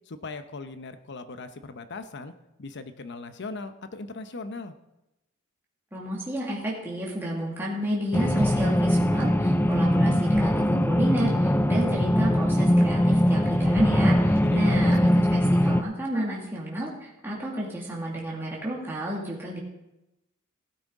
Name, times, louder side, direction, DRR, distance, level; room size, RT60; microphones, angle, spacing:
voice 1, 0.1-2.3 2.6-4.7 14.4-15.1, left 3 dB, 55° left, 10 dB, 0.8 m, -39 dB
voice 2, 5.9-19.6, right 1 dB, 10° right, -5 dB, 1.9 m, -31 dB
sound 1, 8.1-15.8, equal, 10° left, 0.4 m, -21 dB
16.5 x 9.2 x 3.7 m, 0.94 s
head